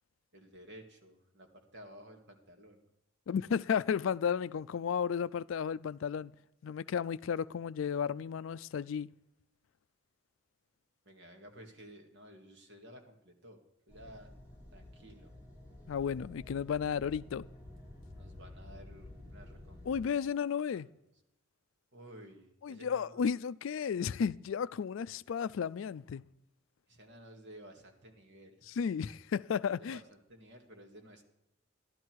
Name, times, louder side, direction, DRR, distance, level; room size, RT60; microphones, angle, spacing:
voice 1, 0.3-2.8 11.1-14.3 14.7-15.3 18.1-20.2 20.7-20.8 21.9-23.2 26.9-28.6 29.8-31.2, equal, 60° right, 2.1 m, -54 dB
voice 2, 3.3-6.3 6.6-9.1 15.9-17.5 19.9-20.9 22.6-26.2 28.7-30.0, left 7 dB, 65° left, 0.3 m, -33 dB
sound 1, 13.9-20.0, left 1 dB, 10° right, 5.6 m, -51 dB
14.5 x 11.5 x 4.6 m
head